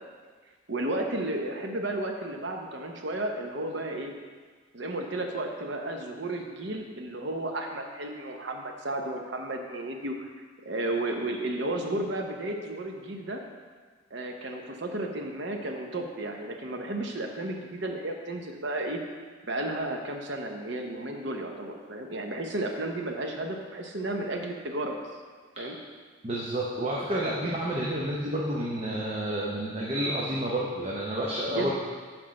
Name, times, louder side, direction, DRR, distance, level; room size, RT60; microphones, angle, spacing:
voice 1, 0.7-4.1 4.7-10.3 10.6-13.4 14.1-19.0 19.5-25.1 25.6-25.8 31.5-31.7, right 1 dB, 60° right, 3 dB, 0.8 m, -33 dB
voice 2, 26.2-31.7, right 1 dB, 30° right, -4 dB, 0.7 m, -30 dB
6.1 x 4.4 x 6.4 m, 1.5 s
head